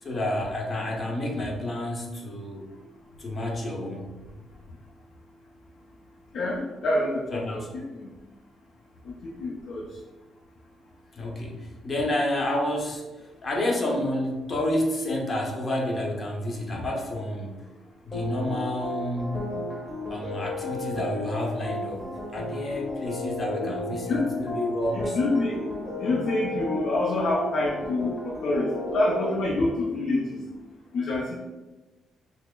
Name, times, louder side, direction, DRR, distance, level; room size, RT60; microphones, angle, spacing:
voice 1, 0.0-2.7 3.2-4.1 7.3-7.7 11.1-13.0 13.4-17.6 18.0-19.6 20.1-25.2, left 1 dB, 35° left, -1 dB, 0.8 m, -29 dB
voice 2, 6.3-8.1 9.1-9.9 16.8-16.9 23.6-23.7 24.1-24.5 24.9-25.6 26.0-30.4 30.9-31.4, left 2 dB, 70° left, -3 dB, 0.5 m, -27 dB
sound 1, 18.1-29.4, left 2 dB, 20° left, 1.3 m, -34 dB
5.9 x 2.0 x 2.2 m, 1.2 s
cardioid pair, 90°, 0 cm